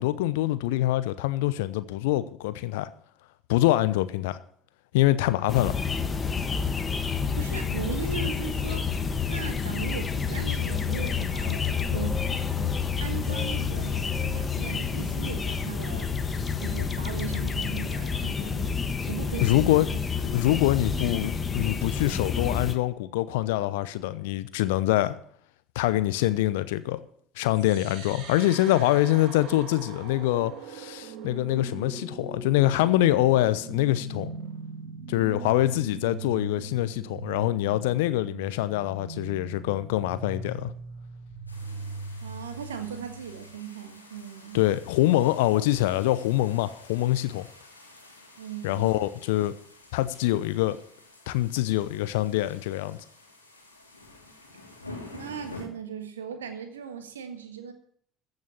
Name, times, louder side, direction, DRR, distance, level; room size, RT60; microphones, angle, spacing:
voice 1, 0.0-2.9 3.5-4.4 4.9-5.8 19.4-19.9 20.2-25.2 25.7-27.0 27.4-34.3 35.1-40.7 44.5-47.5 48.6-49.6 49.9-50.8 51.3-53.0, left 15 dB, 65° left, 0.7 m, -25 dB
sound 1, 5.5-22.7, left 6 dB, 25° left, 1.2 m, -29 dB
voice 2, 7.0-8.9 9.3-12.2 12.6-18.8 19.1-19.9 42.2-44.6 48.4-48.9 54.5-54.7 55.1-57.7, right 7 dB, 75° right, 1.5 m, -38 dB
sound 2, 27.5-43.5, right 4 dB, 60° right, 2.1 m, -41 dB
sound 3, 41.5-55.6, left 2 dB, 90° left, 2.2 m, -49 dB
15.0 x 6.5 x 7.2 m
figure-of-eight pair, 60°, 0 cm